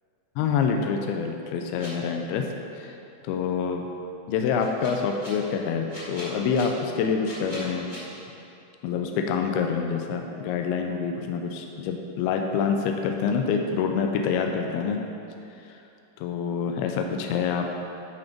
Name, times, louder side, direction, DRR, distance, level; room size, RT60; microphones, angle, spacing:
voice 1, 0.4-2.5 2.7-2.9 3.2-3.8 4.3-7.9 8.8-15.0 16.2-17.7, left 6 dB, 85° left, 3 dB, 2.5 m, -26 dB
sound 1, 1.8-1.9 4.6-5.3 5.9-6.6 7.2-8.0, left 1 dB, 20° left, 1.1 m, -41 dB
10.5 x 5.2 x 4.5 m, 2.8 s
omnidirectional pair, 4.4 m